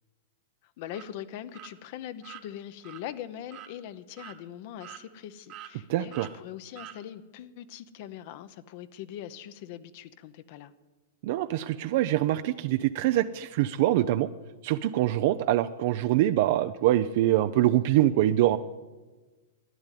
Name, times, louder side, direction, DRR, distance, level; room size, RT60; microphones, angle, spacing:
voice 1, 0.8-10.7, left 11 dB, 55° left, 13 dB, 0.9 m, -42 dB
sound 1, 0.9-1.1 1.5-1.7 2.2-2.4 2.8-3.0 3.5-3.7 4.2-4.4 4.8-5.2 5.5-5.7 6.1-6.3 6.8-7.0, right 12 dB, 35° right, 1.3 m, -45 dB
voice 2, 5.9-6.3 11.2-14.3 14.6-18.6, right 14 dB, 55° right, 10 dB, 0.5 m, -24 dB
12.5 x 9.9 x 9.1 m, 1.2 s
hypercardioid pair, 135°, 0 cm